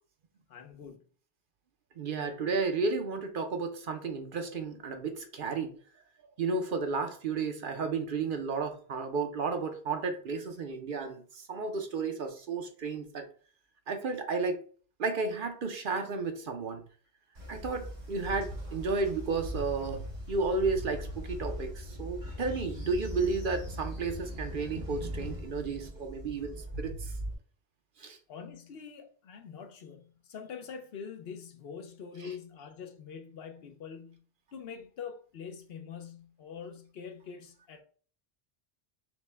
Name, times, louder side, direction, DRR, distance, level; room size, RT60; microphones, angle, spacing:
voice 1, 0.5-1.0 28.3-34.2 34.5-37.8, left 6 dB, 70° left, 0.9 m, -44 dB
voice 2, 2.0-5.8 6.4-13.3 13.9-14.7 15.0-16.8 17.5-27.1 28.0-28.2 32.2-32.3, right 4 dB, 55° right, 0.8 m, -33 dB
Train, 17.3-27.3, equal, 85° right, 2.1 m, -40 dB
6.0 x 2.2 x 3.3 m
omnidirectional pair, 1.1 m